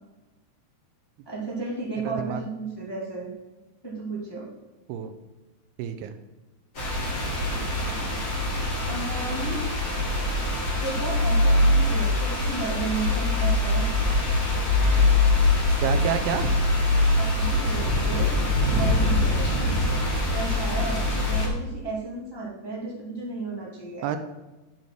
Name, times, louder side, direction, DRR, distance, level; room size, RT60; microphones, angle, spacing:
voice 1, 1.2-3.3 3.8-4.5 8.9-9.6 10.8-13.9 17.1-18.3 18.7-19.5 20.3-21.0 21.3-24.1, right 3 dB, 15° left, -5 dB, 0.8 m, -33 dB
voice 2, 2.0-2.4 4.9-5.1 5.8-6.1 15.8-16.5 24.0-24.2, right 9 dB, 85° right, 9 dB, 2.3 m, -28 dB
sound 1, 6.7-21.5, left 2 dB, 35° left, 1.7 m, -23 dB
10.5 x 5.8 x 4.6 m, 1.1 s
omnidirectional pair, 4.9 m